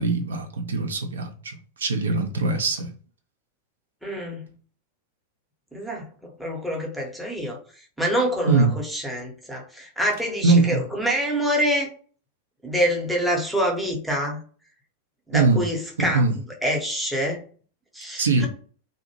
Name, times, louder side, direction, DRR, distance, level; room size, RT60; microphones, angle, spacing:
voice 1, 0.0-2.9 8.5-8.7 10.4-10.8 15.3-15.6 16.1-16.4 18.2-18.5, right 3 dB, 70° right, 0.4 m, -21 dB
voice 2, 4.0-4.4 5.7-6.1 6.4-7.6 8.0-11.9 12.6-14.4 15.3-16.2 16.6-17.4 17.9-18.5, equal, ahead, 0.7 m, -26 dB
2.6 x 2.1 x 2.9 m
figure-of-eight pair, 90°, 0 cm